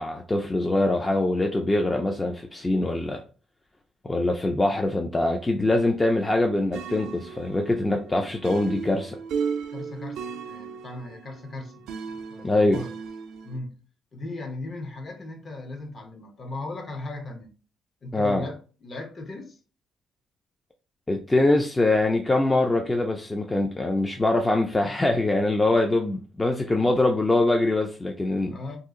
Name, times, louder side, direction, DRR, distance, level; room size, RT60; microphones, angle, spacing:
voice 1, 0.0-3.2 4.0-9.2 12.4-12.8 18.1-18.4 21.1-28.6, left 2 dB, 20° left, 0.4 m, -23 dB
sound 1, 6.7-13.6, right 6 dB, 80° right, 0.4 m, -35 dB
voice 2, 9.7-12.9 13.4-13.8 14.1-17.5 18.0-19.6 28.5-28.8, left 2 dB, 45° left, 0.8 m, -37 dB
2.7 x 2.4 x 3.6 m
cardioid pair, 90°, 0 cm